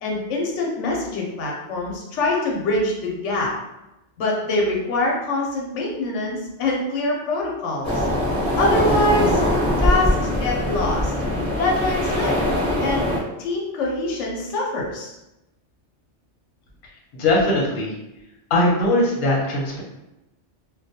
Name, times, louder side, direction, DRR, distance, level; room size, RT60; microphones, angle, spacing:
voice 1, 0.0-3.5 4.2-8.0 8.6-9.4 9.8-11.1 11.6-12.4 12.8-13.1 13.4-15.1, left 2 dB, 85° left, -1 dB, 0.9 m, -24 dB
sound 1, 7.8-13.2, left 1 dB, 5° left, 0.8 m, -22 dB
voice 2, 17.1-17.9 18.5-19.8, left 1 dB, 55° left, -3 dB, 0.8 m, -20 dB
2.2 x 2.2 x 2.7 m, 0.93 s
omnidirectional pair, 1.2 m